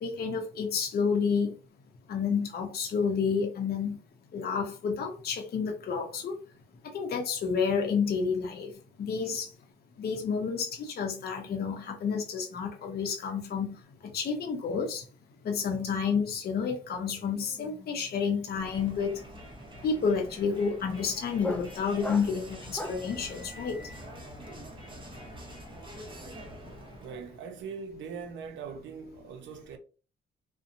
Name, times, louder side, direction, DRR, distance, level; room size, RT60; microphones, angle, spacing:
voice 1, 0.0-1.5 2.1-4.0 4.3-6.4 6.8-8.7 9.0-9.5 10.0-15.1 15.4-19.2 19.8-24.0 26.6-26.7, left 5 dB, 50° left, 0.6 m, -30 dB
sound 1, 16.4-16.7 16.9-23.2, left 1 dB, 5° left, 0.3 m, -42 dB
Crowd, 18.5-27.4, right 1 dB, 25° right, 0.8 m, -46 dB
voice 2, 27.0-29.8, right 6 dB, 75° right, 0.6 m, -41 dB
2.6 x 2.1 x 2.5 m
cardioid pair, 90°, 20 cm